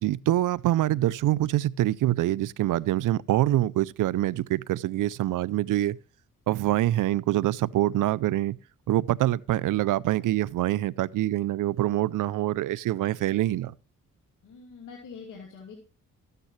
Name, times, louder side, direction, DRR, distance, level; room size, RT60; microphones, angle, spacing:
voice 1, 0.0-6.0 6.5-8.6 8.9-13.7, right 14 dB, 80° right, 0.5 m, -25 dB
voice 2, 14.4-15.8, left 5 dB, 80° left, 2.8 m, -44 dB
13.0 x 9.1 x 3.2 m
cardioid pair, 60°, 31 cm